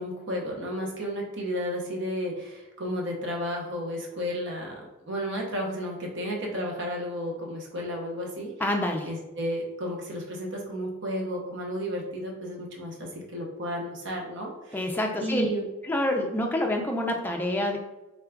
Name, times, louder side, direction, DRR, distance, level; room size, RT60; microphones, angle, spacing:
voice 1, 0.0-4.7 5.1-8.5 9.1-12.9 13.3-14.8 15.2-15.6, equal, 55° right, 0 dB, 0.8 m, -32 dB
voice 2, 8.6-9.1 14.7-15.5 15.8-17.8, left 1 dB, 10° left, 1 dB, 0.4 m, -27 dB
3.8 x 2.3 x 3.4 m, 1.0 s
head